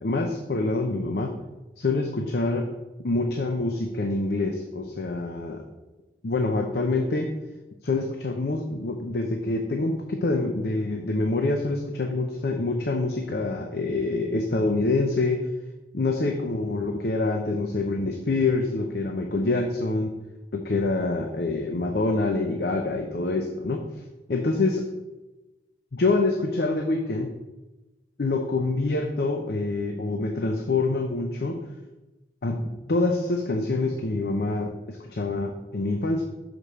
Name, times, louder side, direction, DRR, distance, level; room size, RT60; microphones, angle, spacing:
voice 1, 0.0-1.3 1.8-2.7 3.0-5.6 6.2-7.3 7.8-15.4 15.9-20.1 20.5-23.8 24.3-24.9 25.9-27.3 28.2-31.6 32.4-32.6 32.9-36.2, left 2 dB, 60° left, 4 dB, 0.6 m, -26 dB
6.1 x 5.1 x 5.4 m, 1.1 s
head